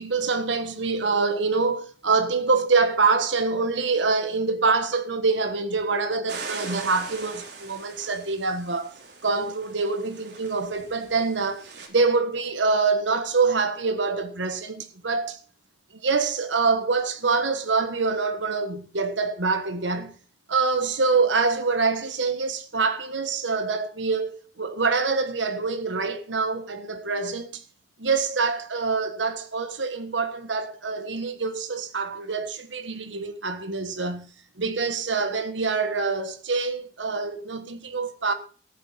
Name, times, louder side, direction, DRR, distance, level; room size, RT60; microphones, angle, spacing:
voice 1, 0.0-8.9 9.2-15.4 16.0-20.1 20.5-27.6 28.0-34.3 34.6-38.3, right 4 dB, 85° right, 1.4 m, -25 dB
sound 1, 6.3-11.9, right 4 dB, 65° right, 3.3 m, -41 dB
14.5 x 8.8 x 5.7 m
head